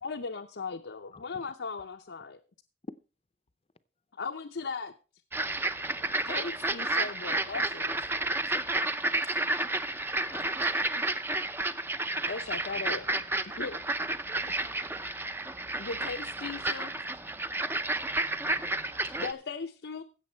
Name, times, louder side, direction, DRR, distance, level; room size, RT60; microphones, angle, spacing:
voice 1, 0.0-2.4 4.2-4.9 6.3-8.1 8.4-8.5 12.3-13.1 13.4-13.8 15.8-17.0 19.0-20.0, left 4 dB, 90° left, 0.7 m, -38 dB
voice 2, 1.1-1.5 2.9-3.0 5.9-6.2 10.1-10.2 11.0-11.1 11.3-12.5, left 2 dB, 35° left, 0.6 m, -51 dB
sound 1, 5.3-19.3, right 2 dB, 10° right, 0.5 m, -31 dB
voice 3, 14.4-15.1 17.7-19.4, right 1 dB, 45° right, 3.1 m, -56 dB
16.0 x 6.8 x 4.4 m
head